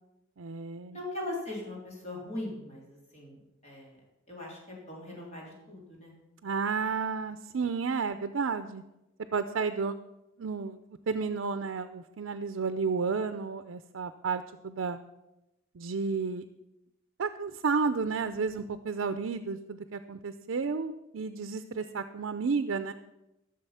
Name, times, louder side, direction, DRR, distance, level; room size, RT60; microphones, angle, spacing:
voice 1, 0.4-1.0 6.4-8.8 9.3-9.9 10.4-10.8 11.1-15.0 15.7-16.4 17.2-22.9, right 5 dB, 80° right, 9 dB, 0.5 m, -32 dB
voice 2, 0.9-4.0 4.3-6.1, left 1 dB, 35° left, -3 dB, 3.5 m, -40 dB
13.5 x 6.6 x 5.6 m, 0.93 s
head